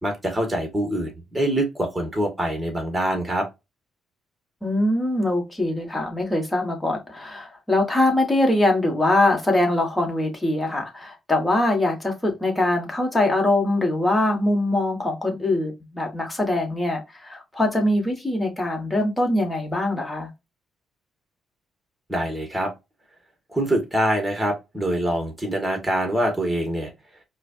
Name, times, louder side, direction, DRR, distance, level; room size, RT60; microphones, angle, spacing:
voice 1, 0.0-3.5 22.1-22.7 23.5-26.9, right 1 dB, 10° right, 1.7 m, -24 dB
voice 2, 4.6-20.3, left 1 dB, 15° left, 1.7 m, -23 dB
4.8 x 2.4 x 2.6 m
cardioid pair, 90°, 0 cm